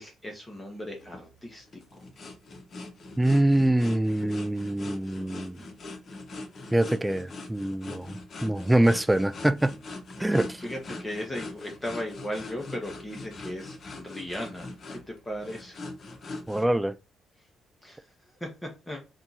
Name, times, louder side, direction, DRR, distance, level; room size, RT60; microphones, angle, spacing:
voice 1, 0.0-1.8 10.3-15.8 17.8-18.0 18.4-19.0, left 1 dB, 15° left, 0.8 m, -37 dB
sound 1, 1.0-16.7, left 2 dB, 50° left, 0.8 m, -42 dB
voice 2, 3.2-5.6 6.7-9.8 10.2-10.6 16.5-17.0, right 1 dB, 10° right, 0.3 m, -24 dB
2.7 x 2.4 x 3.9 m
cardioid pair, 90°, 0 cm